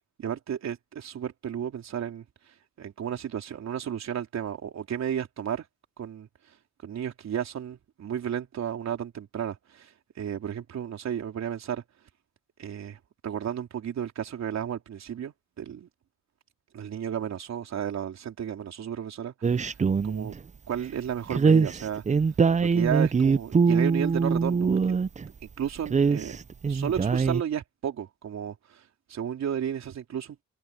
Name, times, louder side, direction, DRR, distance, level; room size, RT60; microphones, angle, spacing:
voice 1, 0.2-2.2 2.8-5.6 6.0-6.3 6.8-11.8 12.6-15.9 16.7-19.8 20.0-20.3 20.7-22.0 22.6-24.7 25.6-26.4 26.7-28.8 29.1-30.4, right 9 dB, 60° right, 4.0 m, -33 dB
sound 1, 19.4-20.4 21.3-25.3 25.8-27.4, right 5 dB, 25° right, 0.6 m, -23 dB
open air
cardioid pair, 90°, 30 cm